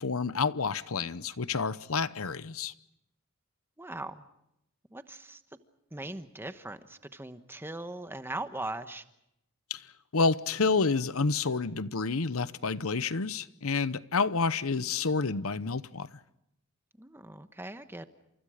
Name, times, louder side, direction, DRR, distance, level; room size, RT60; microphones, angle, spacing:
voice 1, 0.0-2.7 9.7-9.9 10.1-16.1, left 4 dB, 80° left, 0.9 m, -29 dB
voice 2, 3.8-4.2 4.9-5.4 5.9-9.0 17.0-18.1, right 2 dB, 10° right, 1.2 m, -40 dB
29.0 x 27.5 x 5.0 m
head